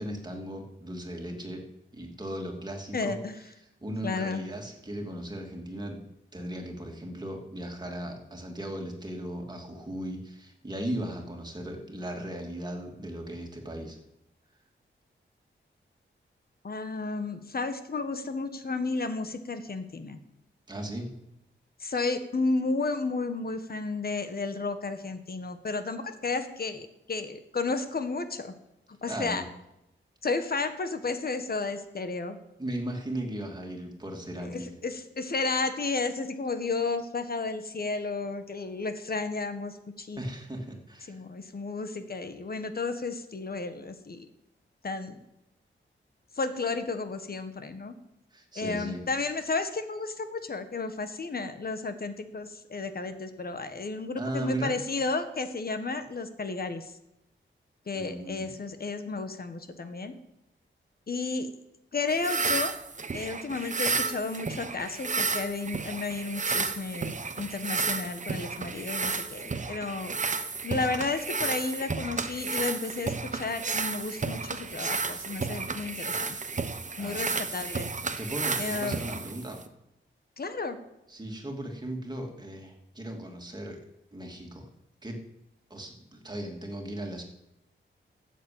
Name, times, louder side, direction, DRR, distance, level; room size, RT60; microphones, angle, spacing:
voice 1, 0.0-1.6 1.9-3.2 3.8-6.0 6.3-14.0 20.7-21.1 29.1-29.4 32.6-34.7 40.2-41.2 48.3-49.0 54.2-54.8 57.9-58.5 77.0-77.2 78.1-79.6 81.1-83.8 84.1-84.7 85.0-85.2 85.7-87.2, right 1 dB, 20° right, 1 dB, 2.8 m, -37 dB
voice 2, 2.9-3.4 4.0-4.4 16.6-20.2 21.8-28.5 29.0-29.4 30.2-32.4 34.4-40.2 41.1-44.3 44.8-45.2 46.3-47.9 48.5-56.9 57.9-60.1 61.1-61.5 61.9-62.7 63.1-70.2 70.6-76.4 77.0-77.9 78.6-79.0 80.4-80.8, left 3 dB, 50° left, 9 dB, 1.4 m, -32 dB
sound 1, 62.1-79.7, right 4 dB, 35° right, 1.0 m, -32 dB
13.0 x 7.6 x 8.7 m, 0.88 s
wide cardioid pair, 115°, 21 cm